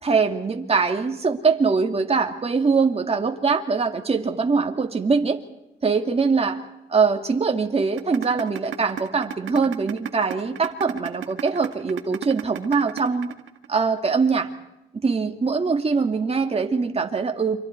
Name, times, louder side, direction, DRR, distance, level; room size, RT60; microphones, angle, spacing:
voice 1, 0.0-5.4 5.8-6.5 6.9-13.3 13.7-14.5 15.0-17.6, right 4 dB, 30° right, 4 dB, 2.4 m, -22 dB
sound 1, 8.0-14.0, right 10 dB, 75° right, 1.5 m, -32 dB
29.5 x 26.0 x 4.7 m, 0.89 s
cardioid pair, 90°, 20 cm